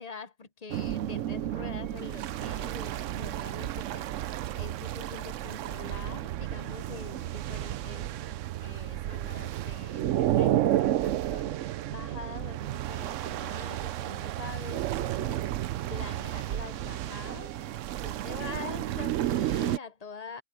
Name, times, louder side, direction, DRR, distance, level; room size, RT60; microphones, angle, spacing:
voice 1, 0.0-8.3 8.6-20.4, left 5 dB, 35° left, 0.6 m, -45 dB
sound 1, 0.7-19.8, right 13 dB, 65° right, 0.8 m, -32 dB
Cricket, 12.6-18.9, left 3 dB, 90° left, 3.5 m, -59 dB
omnidirectional pair, 1.5 m